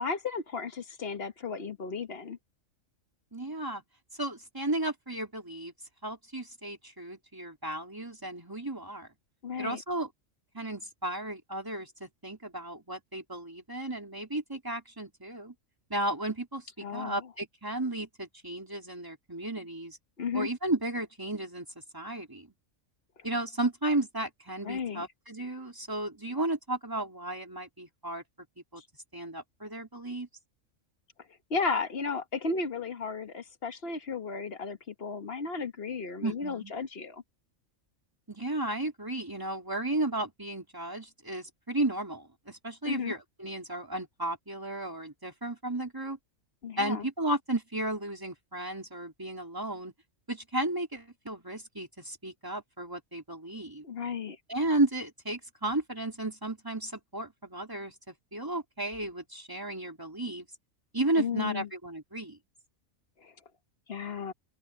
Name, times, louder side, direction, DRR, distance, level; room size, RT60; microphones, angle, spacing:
voice 1, 0.0-2.4 9.4-9.8 16.8-17.2 20.2-20.5 24.6-25.1 31.5-37.2 42.8-43.1 46.6-47.1 53.8-54.4 61.2-61.7 63.2-63.3 63.9-64.3, left 5 dB, 50° left, 1.5 m, -34 dB
voice 2, 3.3-3.8 4.2-5.7 6.0-9.1 9.6-10.1 10.5-15.5 15.9-20.0 20.3-21.7 21.9-22.5 23.2-28.2 28.7-28.8 29.1-30.3 36.2-36.7 38.3-46.2 46.8-49.9 50.3-53.8 54.5-60.5 60.9-62.4, right 1 dB, 15° right, 3.5 m, -34 dB
open air
omnidirectional pair, 1.4 m